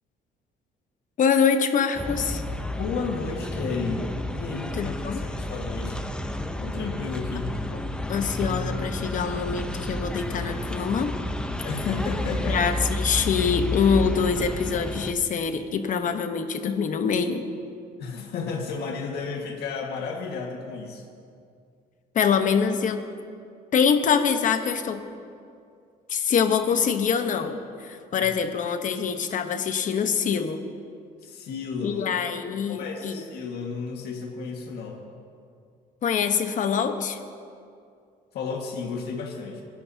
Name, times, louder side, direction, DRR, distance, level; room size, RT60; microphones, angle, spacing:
voice 1, 1.2-2.4 4.7-5.2 8.1-11.1 12.5-17.4 22.1-23.1 23.7-25.0 26.1-30.6 31.8-33.2 36.0-37.2, left 6 dB, 50° left, 7 dB, 1.1 m, -24 dB
sound 1, 1.9-15.1, left 1 dB, 5° left, 0.8 m, -31 dB
voice 2, 2.7-6.1 6.6-7.5 11.6-12.6 18.0-21.0 28.2-28.3 31.2-32.1 32.7-35.0 38.3-39.6, left 5 dB, 70° left, 0 dB, 1.8 m, -33 dB
23.0 x 11.5 x 2.8 m, 2.3 s
cardioid pair, 110°, 17 cm